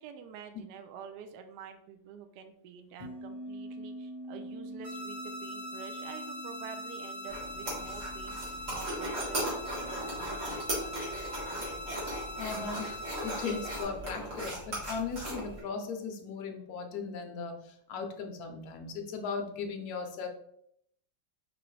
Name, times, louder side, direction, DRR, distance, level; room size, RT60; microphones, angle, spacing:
voice 1, 0.0-11.2, right 7 dB, 75° right, 6 dB, 1.0 m, -48 dB
sound 1, 3.0-10.2 10.5-10.6 11.4-11.8 12.2-12.4 13.3-13.4, right 1 dB, 30° left, 1.2 m, -46 dB
sound 2, 4.8-13.8, left 1 dB, 25° right, 1.3 m, -42 dB
sound 3, 7.3-15.6, right 1 dB, 40° right, 1.8 m, -37 dB
voice 2, 12.4-20.3, left 5 dB, 70° left, 3 dB, 0.9 m, -37 dB
4.6 x 3.7 x 3.1 m, 0.72 s
omnidirectional pair, 2.3 m